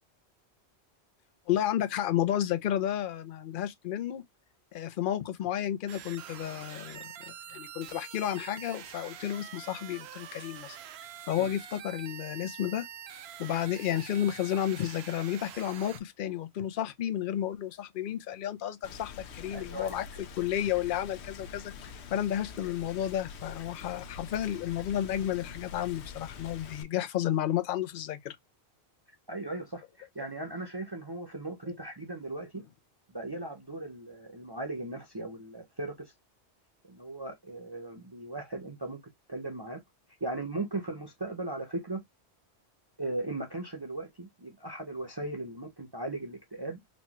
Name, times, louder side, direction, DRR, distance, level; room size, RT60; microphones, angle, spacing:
voice 1, 1.5-4.2 4.7-10.8 11.3-12.9 13.4-20.1 20.3-28.4 31.7-31.8, left 11 dB, 60° left, 0.7 m, -32 dB
sound 1, 5.9-16.0, right 9 dB, 75° right, 0.8 m, -46 dB
Rain, 18.8-26.8, left 6 dB, 85° left, 0.9 m, -45 dB
voice 2, 19.5-19.9 29.3-32.6 33.1-36.1 36.9-39.0 39.3-39.8 40.2-42.0 43.0-46.8, right 2 dB, 25° right, 0.6 m, -38 dB
4.1 x 2.3 x 2.9 m
omnidirectional pair, 1.1 m